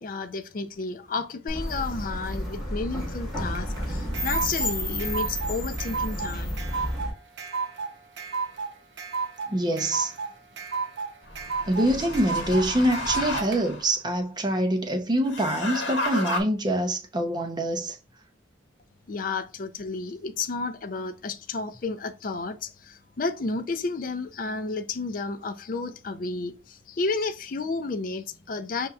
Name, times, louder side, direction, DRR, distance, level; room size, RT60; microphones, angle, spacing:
voice 1, 0.0-6.6 19.1-28.9, left 3 dB, 45° left, 0.4 m, -32 dB
sound 1, 1.5-7.1, equal, 5° right, 1.6 m, -31 dB
sound 2, 3.5-13.6, right 5 dB, 70° right, 0.7 m, -33 dB
voice 2, 9.5-10.1 11.7-18.0, right 1 dB, 20° right, 0.7 m, -25 dB
sound 3, 11.2-13.9 15.3-16.4, left 1 dB, 75° left, 1.4 m, -32 dB
5.4 x 2.7 x 2.3 m
head